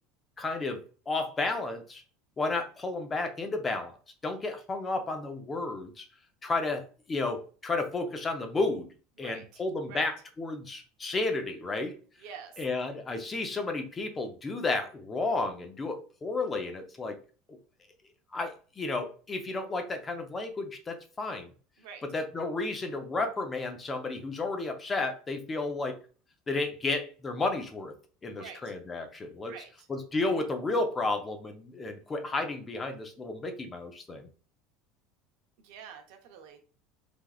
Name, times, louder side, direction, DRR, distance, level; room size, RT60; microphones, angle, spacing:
voice 1, 0.4-0.8 1.1-2.0 2.4-3.9 4.2-6.0 6.4-6.8 7.1-8.9 9.2-12.0 12.6-17.2 17.5-17.6 18.3-21.5 22.0-26.0 26.5-27.9 28.2-29.5 29.9-34.3, left 3 dB, 25° left, 6 dB, 0.5 m, -32 dB
voice 2, 9.2-9.6 9.9-10.1 12.2-12.6 21.8-22.0 28.3-28.6 29.4-29.7 35.6-36.6, right 7 dB, 75° right, 5 dB, 0.6 m, -46 dB
3.4 x 2.3 x 2.3 m, 0.38 s
supercardioid pair, 115°, 0 cm